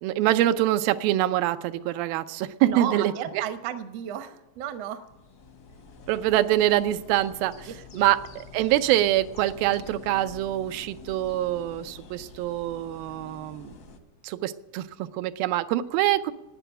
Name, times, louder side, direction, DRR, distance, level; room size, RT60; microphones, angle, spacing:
voice 1, 0.0-3.4 6.1-13.7 14.2-16.3, right 13 dB, 90° right, 11 dB, 2.4 m, -25 dB
voice 2, 2.6-5.1 7.6-8.1, right 10 dB, 70° right, 9 dB, 1.5 m, -34 dB
sound 1, 5.0-14.0, left 4 dB, 75° left, 0.9 m, -47 dB
12.5 x 9.2 x 9.9 m, 0.96 s
omnidirectional pair, 4.0 m